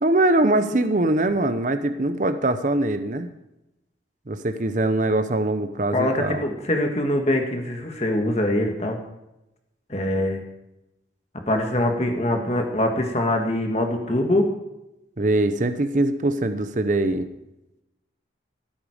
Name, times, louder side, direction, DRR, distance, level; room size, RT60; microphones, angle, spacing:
voice 1, 0.0-3.3 4.3-6.4 15.2-17.3, right 2 dB, 40° right, 10 dB, 0.7 m, -22 dB
voice 2, 5.9-9.0 9.9-10.4 11.5-14.4, left 1 dB, 35° left, 3 dB, 1.6 m, -23 dB
16.5 x 9.1 x 4.9 m, 0.92 s
head